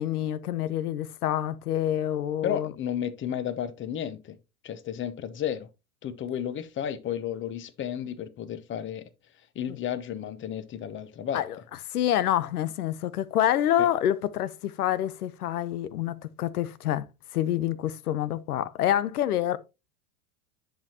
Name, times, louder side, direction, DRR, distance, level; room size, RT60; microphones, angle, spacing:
voice 1, 0.0-2.7 9.7-9.8 11.3-11.6 11.9-17.1 17.3-19.6, left 11 dB, 90° left, 0.9 m, -27 dB
voice 2, 2.4-4.4 4.6-5.7 6.0-9.0 9.5-11.4 13.8-13.9, left 9 dB, 25° left, 0.9 m, -32 dB
10.5 x 5.6 x 2.9 m
supercardioid pair, 120°, 44 cm